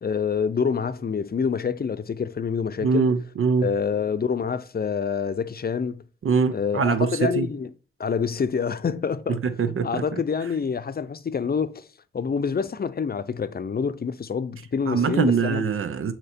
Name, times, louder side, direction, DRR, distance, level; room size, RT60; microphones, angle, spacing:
voice 1, 0.0-3.1 3.6-6.0 6.5-7.7 8.0-11.8 12.1-15.6, left 6 dB, 45° left, 0.5 m, -27 dB
voice 2, 2.8-3.7 6.2-7.1 7.4-7.5 9.6-10.0 14.9-16.1, right 5 dB, 85° right, 0.6 m, -23 dB
7.8 x 2.9 x 4.2 m
wide cardioid pair, 70°, 21 cm